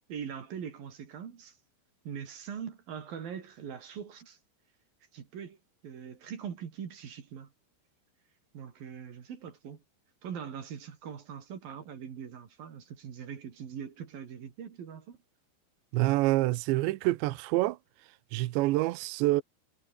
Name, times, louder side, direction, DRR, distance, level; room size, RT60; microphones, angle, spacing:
voice 1, 0.1-1.6 2.1-4.4 5.1-5.6 5.8-7.5 8.5-9.8 10.2-15.2, right 8 dB, 50° right, 4.1 m, -42 dB
voice 2, 15.9-17.8 18.3-19.4, right 18 dB, 75° right, 3.0 m, -27 dB
omnidirectional pair, 5.7 m